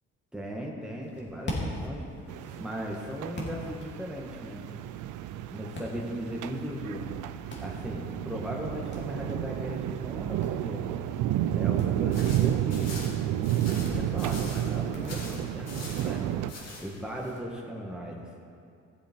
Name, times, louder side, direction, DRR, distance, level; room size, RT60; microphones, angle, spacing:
voice 1, 0.3-2.1 2.6-4.6 5.5-7.0 7.6-10.8 11.5-13.1 13.6-16.3 16.8-18.3, equal, 5° right, -2 dB, 1.6 m, -37 dB
sound 1, 1.0-17.4, left 1 dB, 35° left, 2.5 m, -44 dB
sound 2, 2.3-16.5, right 12 dB, 90° right, 0.5 m, -31 dB
sound 3, 12.1-14.8 15.1-16.1 16.5-16.8, left 3 dB, 60° left, 2.7 m, -43 dB
15.5 x 7.3 x 4.5 m, 2.4 s
cardioid pair, 90°, 30 cm